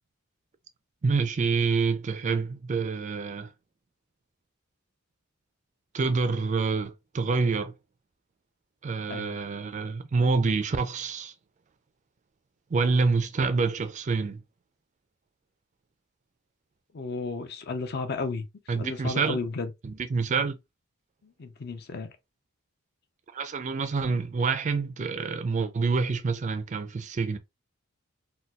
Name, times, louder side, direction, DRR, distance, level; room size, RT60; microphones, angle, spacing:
voice 1, 1.0-3.5 5.9-7.7 8.8-11.3 12.7-14.4 18.7-19.4 19.8-20.6 23.3-27.4, right 4 dB, 35° right, 0.4 m, -27 dB
voice 2, 16.9-18.5 18.7-19.7 21.2-22.1, left 4 dB, 50° left, 0.5 m, -33 dB
4.0 x 2.3 x 2.3 m
head